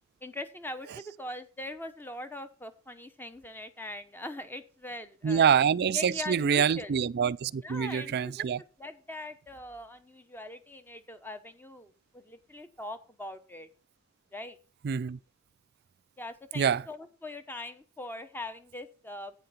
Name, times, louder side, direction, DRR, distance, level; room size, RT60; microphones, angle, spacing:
voice 1, 0.2-5.5 5.9-6.9 7.6-8.4 8.8-13.7 14.3-14.6 16.2-19.3, left 1 dB, 10° left, 1.1 m, -41 dB
voice 2, 5.2-8.6 14.8-15.2 16.5-16.9, right 7 dB, 50° right, 0.4 m, -26 dB
10.5 x 8.8 x 4.3 m
head